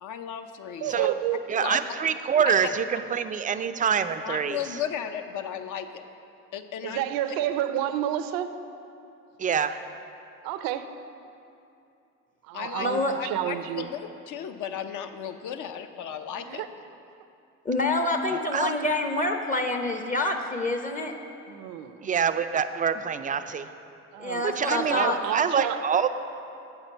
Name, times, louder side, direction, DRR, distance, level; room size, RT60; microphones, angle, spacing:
voice 1, 0.0-1.1 1.6-1.8 2.4-2.5 4.2-6.0 6.5-7.1 12.5-12.9 13.2-16.6, left 9 dB, 55° left, 8 dB, 0.7 m, -35 dB
voice 2, 0.8-1.7 6.8-8.5 10.4-10.9 12.4-13.9 16.4-16.7 21.5-22.1 24.1-24.4 24.8-25.8, right 11 dB, 70° right, 11 dB, 0.6 m, -30 dB
voice 3, 1.5-4.6 9.4-9.8 18.5-18.7 22.0-23.7 24.4-26.1, right 7 dB, 25° right, 10 dB, 0.4 m, -26 dB
voice 4, 12.8-13.1 17.6-21.1 24.2-25.2, left 2 dB, 20° left, 5 dB, 0.7 m, -26 dB
8.2 x 5.9 x 5.4 m, 2.7 s
hypercardioid pair, 65°, 36 cm